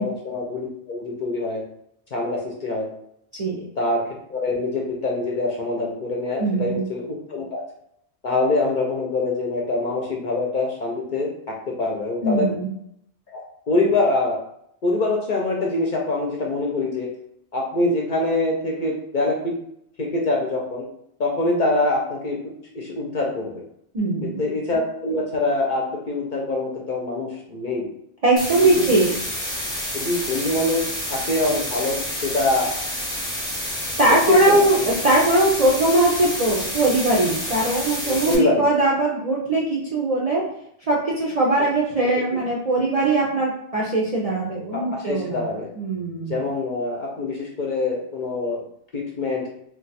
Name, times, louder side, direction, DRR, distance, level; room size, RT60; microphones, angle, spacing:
voice 1, 0.0-1.6 2.1-2.9 3.8-4.0 4.3-7.6 8.2-11.3 11.8-12.5 13.3-13.4 13.7-14.4 14.8-17.1 17.5-19.6 20.0-20.9 21.2-22.4 22.7-23.6 24.2-27.9 28.6-28.9 29.9-30.8 31.1-32.7 34.3-34.6 38.0-38.7 41.6-41.7 42.3-42.4 44.7-45.7 46.3-48.6 48.9-49.4, left 2 dB, 55° left, -1 dB, 0.6 m, -24 dB
voice 2, 6.4-6.9 12.2-12.7 23.9-24.4 28.2-29.1 34.0-40.4 40.9-46.4, right 2 dB, 50° right, -5 dB, 0.4 m, -20 dB
sound 1, 28.4-38.4, equal, 5° left, 0.7 m, -29 dB
2.4 x 2.2 x 4.0 m, 0.74 s
omnidirectional pair, 1.2 m